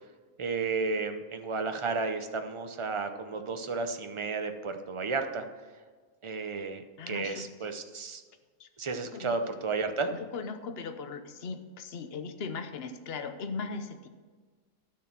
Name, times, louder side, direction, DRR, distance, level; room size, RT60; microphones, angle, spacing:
voice 1, 0.4-5.4 6.2-8.2 8.8-10.1, right 4 dB, 30° right, 7 dB, 0.6 m, -32 dB
voice 2, 7.0-7.5 8.6-8.7 9.1-9.4 10.1-14.1, left 4 dB, 50° left, 8 dB, 1.0 m, -38 dB
12.0 x 6.7 x 6.0 m, 1.5 s
omnidirectional pair, 1.5 m